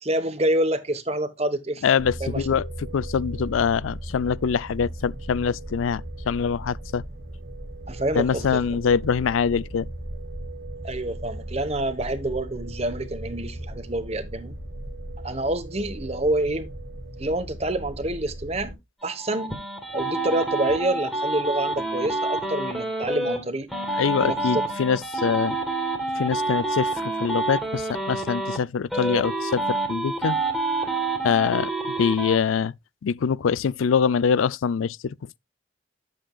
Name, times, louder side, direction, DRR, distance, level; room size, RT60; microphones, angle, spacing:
voice 1, 0.0-1.8 2.2-2.5 7.9-8.6 10.8-14.6 15.2-16.7 17.2-19.6 19.9-23.7 24.2-24.6, right 1 dB, 30° right, 1.1 m, -27 dB
voice 2, 1.8-7.0 8.1-9.9 24.0-25.6 26.2-30.4 31.2-31.7 32.0-32.7 33.0-35.4, left 6 dB, 90° left, 0.4 m, -24 dB
sound 1, 2.0-18.8, right 1 dB, 55° right, 1.8 m, -37 dB
sound 2, 19.0-23.4 23.7-28.6 28.9-32.4, right 2 dB, ahead, 2.2 m, -28 dB
11.0 x 7.7 x 2.3 m
head